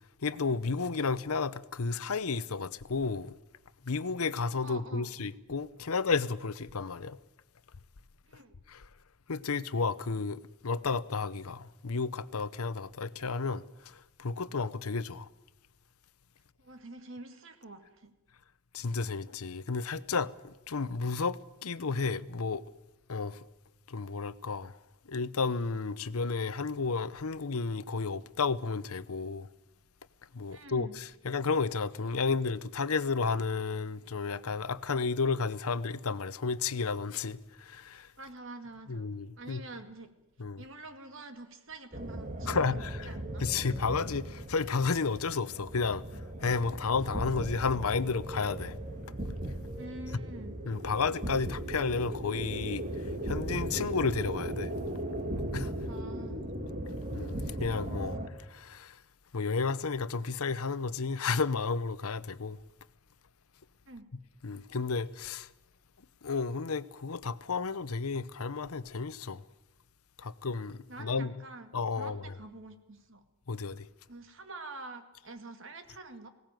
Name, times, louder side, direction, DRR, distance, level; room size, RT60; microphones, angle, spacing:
voice 1, 0.2-3.3 3.9-7.2 8.7-8.8 9.3-13.6 14.2-15.3 18.7-22.6 23.1-23.4 23.9-24.7 25.1-29.5 30.3-38.1 38.9-39.6 40.4-40.6 42.5-43.1 43.4-46.0 46.4-48.7 50.7-52.8 53.3-54.7 55.5-55.7 57.1-58.2 58.5-58.9 59.3-62.6 64.4-65.5 66.2-69.4 70.2-71.3 71.7-72.2 73.5-73.9, left 4 dB, 80° left, 0.8 m, -32 dB
voice 2, 4.6-5.1 8.3-8.5 16.6-18.1 30.5-31.0 38.2-40.1 40.6-43.4 49.8-50.6 55.9-56.4 63.9-64.1 70.9-73.2 74.1-76.3, right 2 dB, 60° right, 2.1 m, -47 dB
sound 1, 41.9-58.3, right 1 dB, 35° right, 1.8 m, -37 dB
19.5 x 17.5 x 9.2 m
head